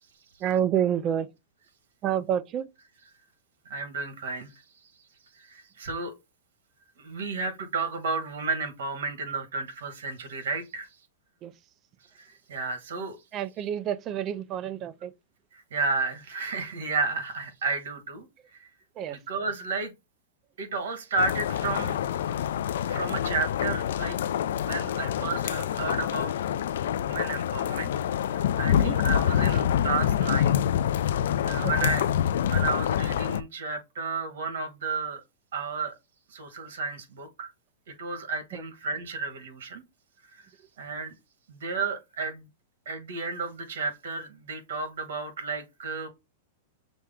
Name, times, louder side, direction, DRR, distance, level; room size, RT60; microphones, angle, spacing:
voice 1, 0.4-1.3 2.0-2.7 11.4-11.5 13.3-15.1 19.0-19.2 28.7-29.0 31.6-31.7, right 9 dB, 25° right, 0.3 m, -28 dB
voice 2, 3.6-4.6 5.3-6.1 7.0-10.9 12.1-13.2 15.5-18.7 19.1-19.9 20.6-22.0 22.9-24.2 24.6-26.3 26.9-27.9 28.2-30.7 31.4-32.1 32.5-35.2 35.5-35.9 36.3-37.5 37.9-39.8 40.3-40.5 40.8-41.2 41.5-42.5 42.8-46.1, right 4 dB, 80° right, 1.5 m, -32 dB
sound 1, 21.2-33.4, left 10 dB, 70° left, 0.3 m, -26 dB
6.0 x 2.1 x 3.5 m
supercardioid pair, 175°, 0 cm